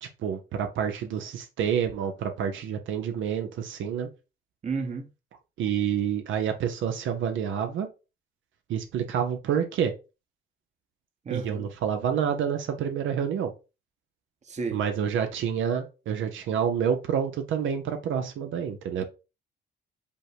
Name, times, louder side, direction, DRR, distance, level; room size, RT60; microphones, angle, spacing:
voice 1, 0.0-4.1 5.6-7.9 8.7-9.9 11.3-13.5 14.7-19.0, right 8 dB, 75° right, 0.7 m, -28 dB
voice 2, 4.6-5.1 11.2-11.7 14.4-14.8, right 4 dB, 35° right, 1.0 m, -32 dB
5.3 x 2.1 x 4.6 m
cardioid pair, 90°, 20 cm